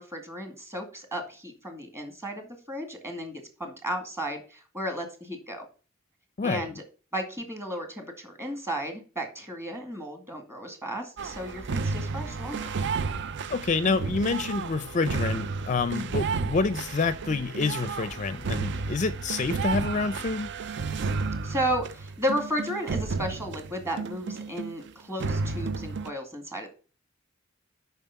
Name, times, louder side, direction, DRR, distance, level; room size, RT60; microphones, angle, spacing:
voice 1, 0.0-5.7 6.4-6.8 7.1-12.7 15.9-16.2 21.4-26.7, equal, 15° right, 2.1 m, -34 dB
voice 2, 6.4-6.7 13.5-20.5, left 4 dB, 35° left, 0.5 m, -28 dB
sound 1, 11.2-24.9 25.2-26.1, right 4 dB, 60° right, 0.5 m, -32 dB
7.3 x 5.9 x 5.7 m
head